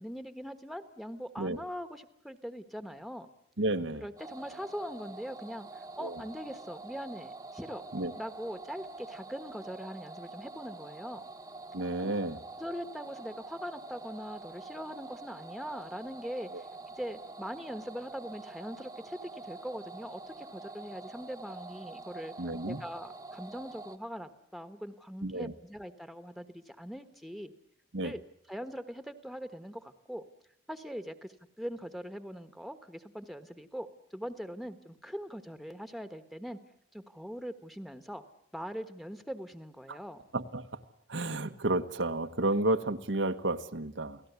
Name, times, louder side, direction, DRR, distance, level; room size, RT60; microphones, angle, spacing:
voice 1, 0.0-3.3 4.0-7.8 8.2-11.2 12.0-12.1 12.6-16.6 17.0-22.3 22.6-27.5 28.0-28.2 28.5-30.2 30.7-31.3 31.6-36.6 36.9-38.2 38.5-40.2, equal, ahead, 9 dB, 1.3 m, -41 dB
voice 2, 3.6-4.0 6.0-6.1 7.9-8.1 11.7-12.4 16.5-16.6 22.4-22.8 25.2-25.5 27.9-28.1 39.9-40.0 40.3-40.6 41.1-44.2, right 2 dB, 85° right, 7 dB, 1.4 m, -31 dB
sound 1, 4.2-24.0, right 3 dB, 20° right, 1.1 m, -46 dB
29.0 x 18.0 x 8.3 m, 0.76 s
head